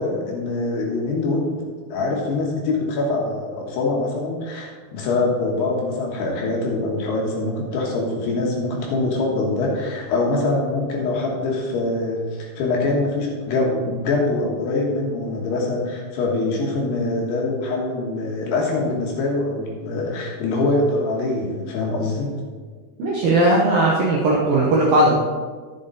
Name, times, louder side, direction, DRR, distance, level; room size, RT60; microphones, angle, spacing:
voice 1, 0.0-1.6 1.9-22.3, left 2 dB, 70° left, -1 dB, 3.2 m, -24 dB
voice 2, 23.0-25.1, right 1 dB, 75° right, -4 dB, 2.1 m, -17 dB
11.5 x 7.3 x 4.0 m, 1.5 s
omnidirectional pair, 5.4 m